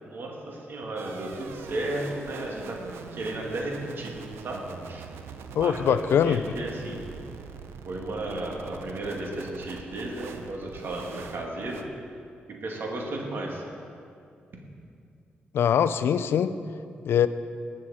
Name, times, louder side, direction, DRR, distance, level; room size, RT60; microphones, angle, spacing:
voice 1, 0.0-2.8 3.1-4.2 4.4-5.0 5.6-7.0 7.8-11.8 12.5-13.6, right 2 dB, 65° right, -1 dB, 2.1 m, -34 dB
sound 1, 1.0-11.8, right 6 dB, 85° right, 0.6 m, -43 dB
voice 2, 5.5-6.4 15.5-16.6 17.0-17.3, left 8 dB, 75° left, 13 dB, 0.4 m, -22 dB
18.5 x 6.3 x 4.3 m, 2.4 s
supercardioid pair, 55°, 4 cm